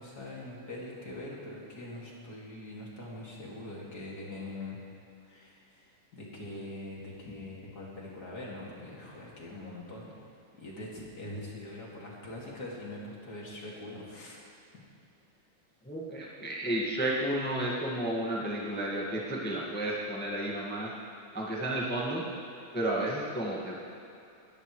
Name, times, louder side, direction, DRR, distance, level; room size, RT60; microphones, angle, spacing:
voice 1, 0.0-4.8 5.3-10.2 10.6-14.4, left 1 dB, 30° left, -4 dB, 2.5 m, -43 dB
voice 2, 15.8-20.9 21.3-22.3 22.7-23.8, right 1 dB, 15° left, -4 dB, 0.3 m, -32 dB
20.5 x 13.5 x 3.3 m, 2.8 s
omnidirectional pair, 3.7 m